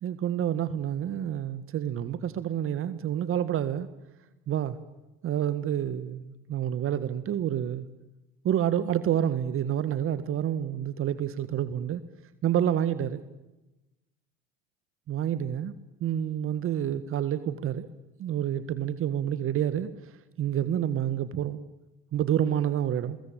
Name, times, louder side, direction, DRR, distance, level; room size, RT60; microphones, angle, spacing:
voice 1, 0.0-3.9 4.5-4.8 5.2-7.9 8.4-12.0 12.4-13.2 15.1-15.7 16.0-17.9 18.2-21.6 22.1-23.2, right 10 dB, 45° right, 1.7 m, -28 dB
24.0 x 21.5 x 8.9 m
hypercardioid pair, 80°, 29 cm